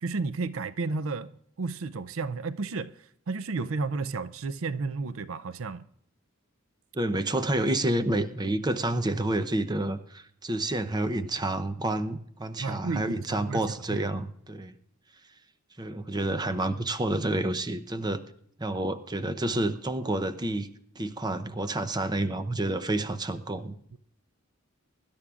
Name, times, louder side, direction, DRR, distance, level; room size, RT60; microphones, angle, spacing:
voice 1, 0.0-5.8 12.6-14.1 23.9-24.0, right 4 dB, 75° right, 0.5 m, -32 dB
voice 2, 6.9-14.7 15.8-18.2 18.6-20.7 21.0-23.8, right 1 dB, 20° right, 0.7 m, -29 dB
23.5 x 12.0 x 2.5 m
head